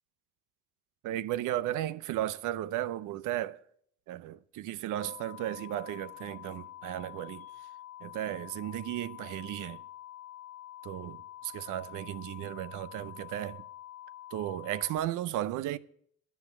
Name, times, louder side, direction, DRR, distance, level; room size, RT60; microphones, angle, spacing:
voice 1, 1.0-3.6 4.1-7.5 8.0-9.8 10.8-13.6 14.3-15.8, right 13 dB, 90° right, 0.5 m, -35 dB
sound 1, 5.0-15.0, left 13 dB, 55° left, 1.3 m, -47 dB
10.0 x 9.3 x 6.9 m
cardioid pair, 90°, 30 cm